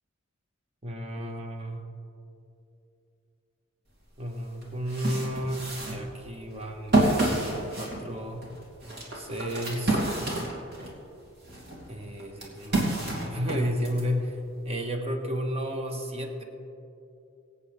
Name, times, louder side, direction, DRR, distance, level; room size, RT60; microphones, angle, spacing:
voice 1, 0.8-1.9 4.2-8.5 9.1-10.0 11.9-14.4 14.6-16.4, equal, 30° right, 3 dB, 1.3 m, -32 dB
sound 1, 4.1-4.2 4.6-11.0 11.4-14.0, right 2 dB, 55° right, 2.6 m, -29 dB
23.5 x 8.5 x 3.5 m, 2.8 s
head